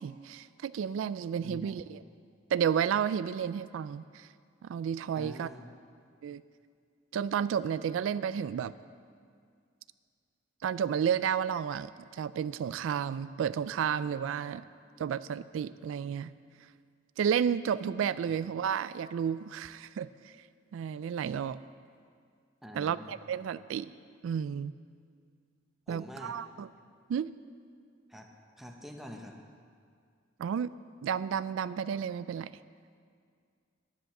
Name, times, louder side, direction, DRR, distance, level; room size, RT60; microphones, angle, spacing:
voice 1, 0.0-2.0 2.5-4.3 4.7-5.5 6.2-6.4 7.1-8.7 10.6-14.6 15.0-16.3 17.2-20.3 20.7-21.6 22.7-23.9 24.2-24.7 25.9-26.7 27.1-27.4 30.4-30.7 31.0-32.5, right 8 dB, 85° right, 17 dB, 0.3 m, -32 dB
voice 2, 1.4-1.9 5.1-5.7 22.6-23.2 25.9-26.4 28.1-28.3 28.6-29.4, equal, ahead, 2 dB, 0.9 m, -46 dB
10.5 x 10.5 x 6.0 m, 2.2 s
head